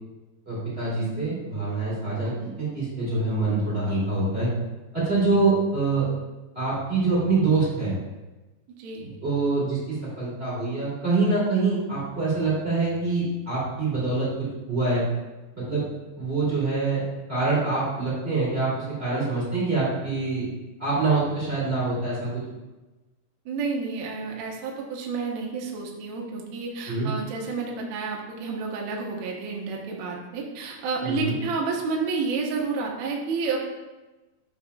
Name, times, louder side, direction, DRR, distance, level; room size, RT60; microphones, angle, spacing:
voice 1, 0.5-4.5 4.9-6.1 6.5-8.0 9.0-14.3 14.7-15.0 15.5-15.8 16.2-17.0 17.3-20.5 20.8-22.4 26.9-27.1 31.0-31.3, right 3 dB, 20° right, -8 dB, 2.1 m, -25 dB
voice 2, 23.4-33.6, right 4 dB, 80° right, -1 dB, 1.6 m, -30 dB
13.0 x 5.4 x 2.4 m, 1.1 s
omnidirectional pair, 5.0 m